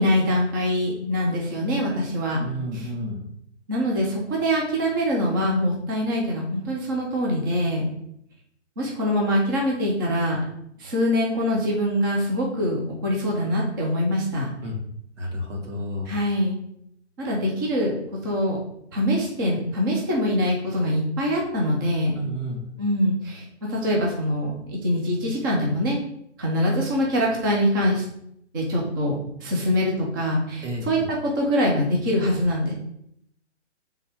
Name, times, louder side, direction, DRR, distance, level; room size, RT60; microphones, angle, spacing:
voice 1, 0.0-2.4 2.7-2.9 3.7-7.9 8.8-10.4 10.8-14.5 16.1-16.6 17.2-17.9 18.2-18.6 18.9-22.2 22.8-26.0 26.4-28.0 28.5-32.7, equal, 20° right, -2 dB, 0.7 m, -24 dB
voice 2, 2.3-3.2 14.6-14.8 15.2-16.1 22.2-22.6 30.6-30.9, equal, 85° right, 0 dB, 2.1 m, -31 dB
7.5 x 3.5 x 3.6 m, 0.74 s
hypercardioid pair, 170°, 35 cm